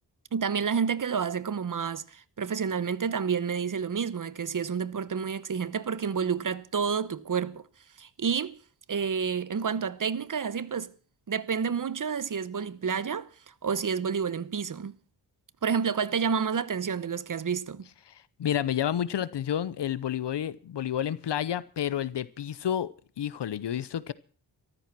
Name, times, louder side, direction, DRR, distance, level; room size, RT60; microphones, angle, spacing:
voice 1, 0.3-7.7 8.0-8.6 8.9-10.9 11.3-13.3 13.6-14.9 15.6-17.9, right 6 dB, 45° right, 1.0 m, -29 dB
voice 2, 18.4-22.9 23.2-24.1, left 10 dB, 75° left, 0.8 m, -30 dB
14.0 x 13.5 x 6.0 m
cardioid pair, 65°, 42 cm